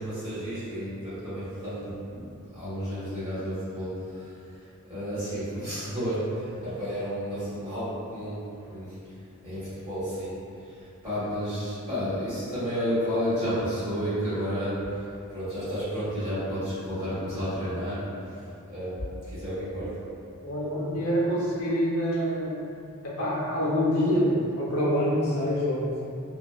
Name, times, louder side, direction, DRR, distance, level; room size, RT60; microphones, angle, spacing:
voice 1, 0.0-4.3 4.9-9.0 9.4-10.4 10.6-20.0, equal, 20° right, -14 dB, 1.5 m, -32 dB
voice 2, 20.4-22.7 23.0-26.0, equal, 75° left, -8 dB, 0.7 m, -26 dB
2.9 x 2.2 x 2.3 m, 2.5 s
head